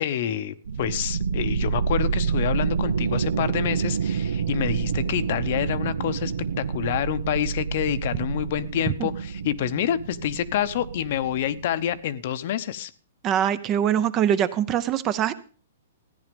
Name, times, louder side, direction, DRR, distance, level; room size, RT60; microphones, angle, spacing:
voice 1, 0.0-12.9, left 11 dB, 45° left, 13 dB, 0.9 m, -27 dB
sound 1, 0.7-12.0, right 6 dB, 80° right, 0.8 m, -28 dB
voice 2, 13.2-15.3, right 9 dB, 20° right, 14 dB, 0.7 m, -23 dB
14.0 x 10.0 x 5.2 m, 0.40 s
hypercardioid pair, 165°, 0 cm